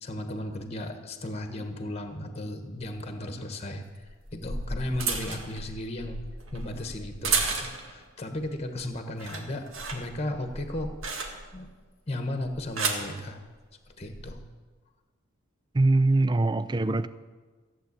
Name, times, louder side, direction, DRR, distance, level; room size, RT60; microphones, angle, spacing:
voice 1, 0.0-6.2 6.5-10.9 11.5-11.7 12.1-13.4 13.9-14.4, left 1 dB, 30° left, 6 dB, 1.3 m, -35 dB
sound 1, 2.8-2.9 4.1-8.0 8.5-8.8 9.1-11.7 12.4-13.1 14.0-14.3, right 4 dB, 65° right, 1.8 m, -33 dB
voice 2, 15.7-17.1, right 2 dB, 20° right, 15 dB, 0.4 m, -22 dB
15.0 x 8.0 x 8.3 m, 1.4 s
head